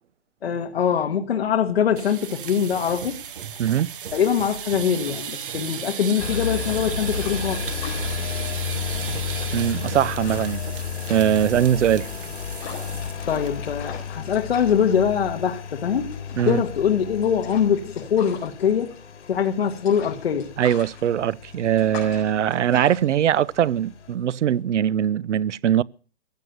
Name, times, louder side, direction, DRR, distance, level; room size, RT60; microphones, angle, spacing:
voice 1, 0.4-3.2 4.1-7.6 13.3-16.2 16.5-18.9 19.3-20.5, left 8 dB, 60° left, 1.6 m, -23 dB
sound 1, 1.9-13.5 13.8-14.1 14.4-14.5 14.9-15.3, right 8 dB, 50° right, 0.9 m, -35 dB
voice 2, 3.6-3.9 9.5-10.6 11.1-12.1 16.4-16.6 20.6-25.8, right 10 dB, 90° right, 0.7 m, -21 dB
sound 2, 5.0-24.6, left 6 dB, 20° left, 4.5 m, -43 dB
Engine, 6.2-24.1, left 6 dB, 80° left, 2.6 m, -33 dB
16.0 x 9.4 x 8.0 m
hypercardioid pair, 180°, 35 cm